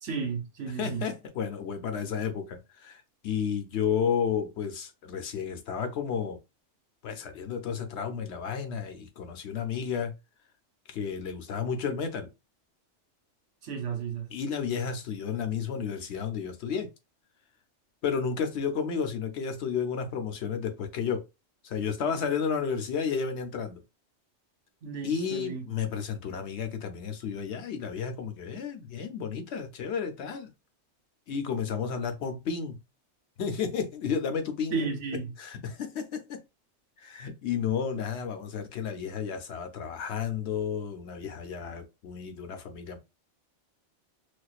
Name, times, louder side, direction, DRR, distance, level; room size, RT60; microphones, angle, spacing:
voice 1, 0.0-1.0 13.6-14.3 24.8-25.7 34.7-35.3, right 5 dB, 75° right, 1.3 m, -33 dB
voice 2, 0.8-6.4 7.0-10.1 10.9-12.3 14.3-16.9 18.0-21.3 21.6-23.8 25.0-30.5 31.3-32.8 33.4-34.8 35.4-36.4 37.0-43.0, left 6 dB, 70° left, 0.9 m, -32 dB
4.3 x 2.2 x 2.4 m
omnidirectional pair, 1.2 m